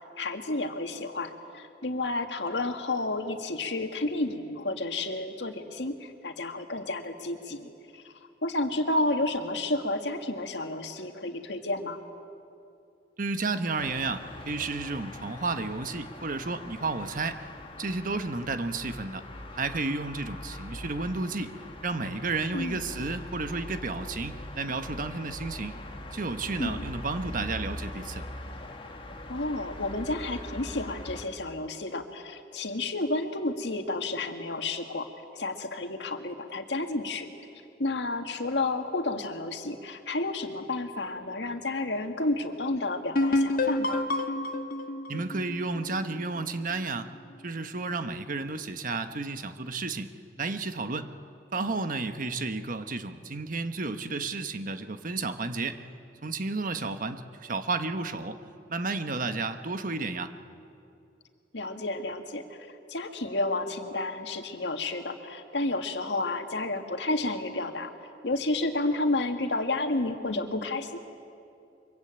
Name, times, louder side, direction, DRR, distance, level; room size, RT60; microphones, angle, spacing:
voice 1, 0.2-8.1 8.4-12.0 22.5-22.8 26.6-26.9 29.3-35.1 35.4-37.3 37.8-44.1 61.5-67.9 68.2-71.0, left 2 dB, 80° left, 6 dB, 1.9 m, -31 dB
voice 2, 13.2-17.5 17.8-19.2 19.5-21.5 21.8-25.7 26.1-28.2 45.1-47.1 47.4-50.1 50.4-51.1 51.5-55.8 56.2-58.4 58.7-60.3, right 3 dB, 50° right, 9 dB, 1.2 m, -32 dB
sound 1, 13.8-31.3, left 1 dB, 30° left, 2.1 m, -42 dB
sound 2, 43.2-46.7, left 2 dB, 55° left, 1.5 m, -28 dB
24.0 x 23.5 x 8.9 m, 2.6 s
head